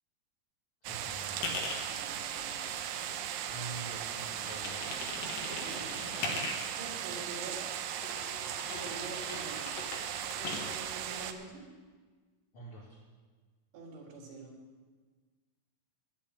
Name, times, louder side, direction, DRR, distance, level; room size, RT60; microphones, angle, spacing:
sound 1, 0.8-11.3, right 10 dB, 90° right, 2.3 m, -38 dB
voice 1, 0.9-1.4 3.5-4.9 12.5-13.0, right 2 dB, 40° left, -7 dB, 2.8 m, -46 dB
sound 2, 1.3-1.8 2.4-3.5 3.8-6.8 7.6-10.8, left 3 dB, 80° left, 3.0 m, -40 dB
voice 2, 1.9-2.8 5.6-7.6 8.7-9.8 10.3-11.6 13.7-14.5, right 3 dB, 65° right, -3 dB, 3.2 m, -47 dB
10.5 x 7.4 x 9.0 m, 1.4 s
omnidirectional pair, 4.0 m